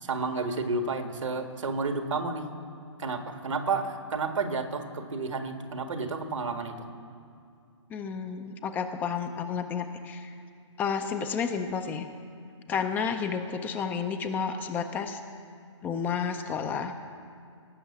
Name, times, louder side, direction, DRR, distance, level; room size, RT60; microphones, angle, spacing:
voice 1, 0.0-2.4 3.0-6.9, right 4 dB, 80° right, 6 dB, 1.7 m, -31 dB
voice 2, 7.9-10.3 10.8-12.1 12.7-15.2 15.8-16.9, left 6 dB, 10° left, 7 dB, 0.5 m, -31 dB
17.5 x 6.3 x 8.2 m, 2.4 s
hypercardioid pair, 150°, 16 cm